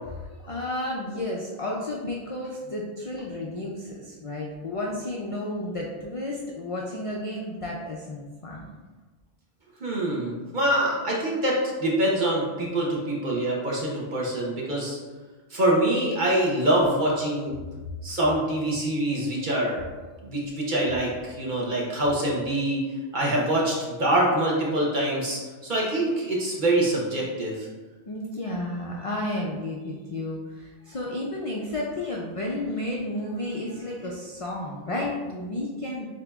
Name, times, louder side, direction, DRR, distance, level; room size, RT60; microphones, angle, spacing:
voice 1, 0.4-8.7 28.1-36.1, left 1 dB, 55° left, -2 dB, 0.4 m, -32 dB
voice 2, 9.8-15.0 15.5-17.6 18.0-19.8 20.2-22.8 23.1-27.7, right 1 dB, 45° right, -4 dB, 1.0 m, -25 dB
7.4 x 2.7 x 2.3 m, 1.3 s
omnidirectional pair, 1.2 m